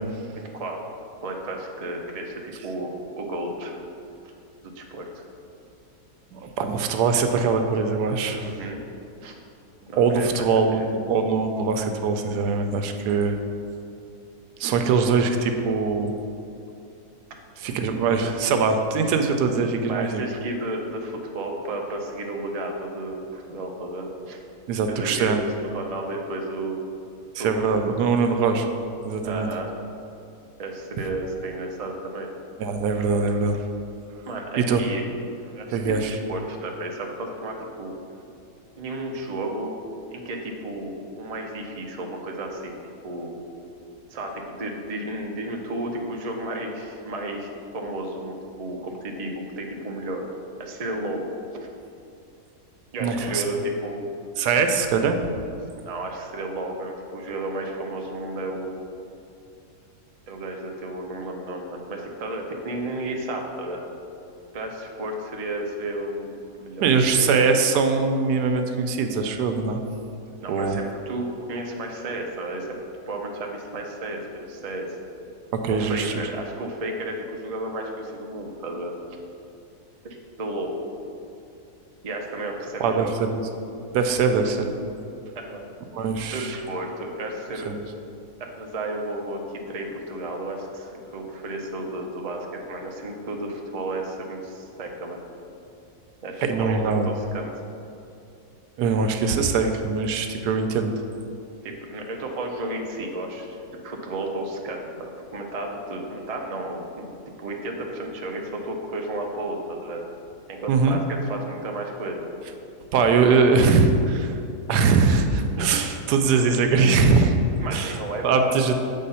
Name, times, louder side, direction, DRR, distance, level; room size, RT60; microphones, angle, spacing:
voice 1, 0.3-0.8 1.2-3.8 4.6-5.2 8.4-8.8 9.2-9.4 9.9-10.3 10.7-10.9 19.9-24.4 24.9-25.4 25.7-26.8 27.4-27.8 29.2-29.7 30.6-32.3 34.3-35.0 35.4-37.9 38.8-39.8 40.1-43.3 44.1-47.5 47.7-50.3 50.6-51.3 52.9-54.0 55.8-58.9 60.3-63.8 64.5-67.3 70.4-72.8 73.1-75.0 75.7-78.9 80.0-80.8 82.0-83.1 85.4-85.7 86.3-87.7 88.6-95.2 96.2-97.5 101.6-107.1 107.4-110.0 110.5-112.3 113.2-113.5 115.9-116.0 117.6-118.6, right 1 dB, 55° right, 1 dB, 0.4 m, -33 dB
voice 2, 6.3-8.5 10.0-13.4 14.6-16.1 17.6-20.2 24.7-25.4 27.3-28.7 29.0-29.5 32.6-33.6 34.6-34.8 35.7-36.1 53.0-53.4 54.4-55.2 66.8-69.8 70.5-70.8 75.6-76.1 82.8-83.4 83.9-84.7 85.9-86.5 87.6-87.8 96.4-97.1 98.8-100.9 110.7-111.0 112.9-114.4 114.7-117.4 117.7-118.0 118.2-118.7, right 4 dB, 90° right, 6 dB, 1.2 m, -22 dB
7.5 x 3.7 x 5.5 m, 2.6 s
omnidirectional pair, 1.7 m